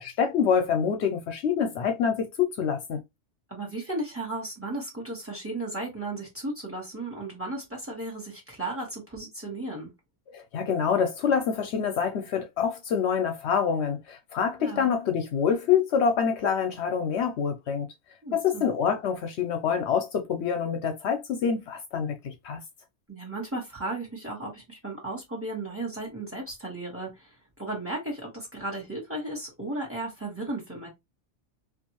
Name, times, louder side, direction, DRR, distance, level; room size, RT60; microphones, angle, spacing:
voice 1, 0.0-3.0 10.3-17.9 18.3-22.6, left 7 dB, 70° left, 0.8 m, -26 dB
voice 2, 3.5-9.9 14.6-14.9 18.2-18.7 23.1-30.9, right 2 dB, 10° right, 1.2 m, -35 dB
2.6 x 2.4 x 2.8 m
omnidirectional pair, 1.2 m